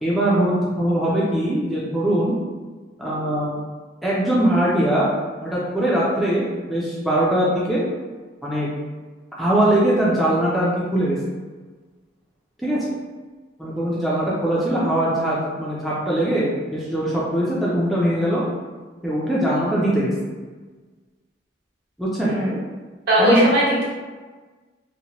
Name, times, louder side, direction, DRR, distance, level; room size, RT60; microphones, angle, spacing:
voice 1, 0.0-2.3 3.0-3.6 4.0-5.1 5.4-7.8 8.4-8.7 9.4-11.2 12.6-12.9 13.6-18.4 19.0-20.1 22.0-22.4 23.2-23.4, right 1 dB, ahead, -8 dB, 0.3 m, -21 dB
voice 2, 23.1-23.8, equal, 55° right, -7 dB, 0.9 m, -18 dB
2.7 x 2.1 x 2.8 m, 1.3 s
head